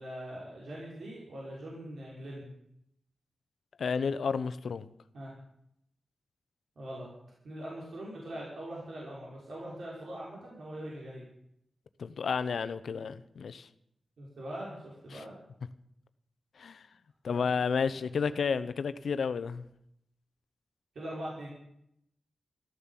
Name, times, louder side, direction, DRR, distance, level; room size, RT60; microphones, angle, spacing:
voice 1, 0.0-2.5 5.1-5.3 6.8-7.1 7.4-11.2 14.2-15.3 17.3-17.5 18.0-18.4 20.9-21.5, right 1 dB, 75° right, -5 dB, 5.9 m, -42 dB
voice 2, 3.8-4.9 12.0-13.7 15.1-15.2 16.6-16.9 17.2-19.6, left 5 dB, 80° left, 13 dB, 0.9 m, -31 dB
14.0 x 13.5 x 7.5 m, 0.74 s
wide cardioid pair, 125°, 0 cm